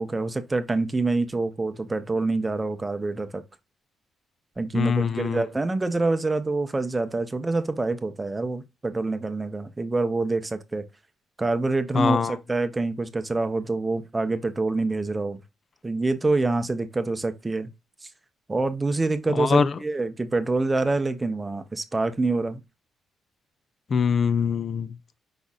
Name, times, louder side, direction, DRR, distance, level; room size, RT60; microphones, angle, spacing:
voice 1, 0.0-3.4 4.6-10.8 11.4-15.4 15.8-17.7 18.0-18.1 18.5-22.6, right 3 dB, 20° right, 0.6 m, -26 dB
voice 2, 4.7-5.5 11.9-12.4 19.3-19.8 23.9-25.0, left 6 dB, 45° left, 0.4 m, -23 dB
5.0 x 4.0 x 2.3 m
cardioid pair, 90°, 0 cm